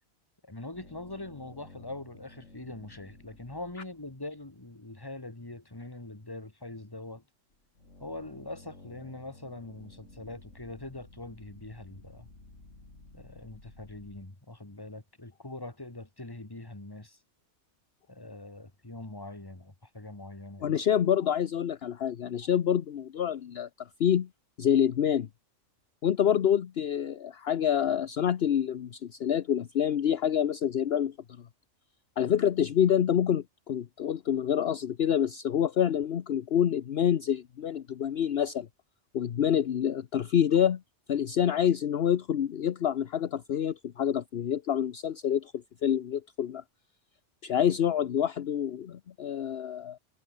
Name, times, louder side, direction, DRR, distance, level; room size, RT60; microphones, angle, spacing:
voice 1, 0.4-7.2 8.0-12.3 13.1-17.2 18.1-20.8, left 2 dB, 20° left, 2.2 m, -43 dB
sound 1, 0.7-4.8 7.5-14.3, left 2 dB, 80° left, 5.0 m, -53 dB
voice 2, 20.6-24.3 24.6-25.3 26.0-31.1 32.2-38.7 39.1-40.8 41.1-46.6 47.4-50.0, left 9 dB, 60° left, 1.0 m, -27 dB
omnidirectional pair, 1.3 m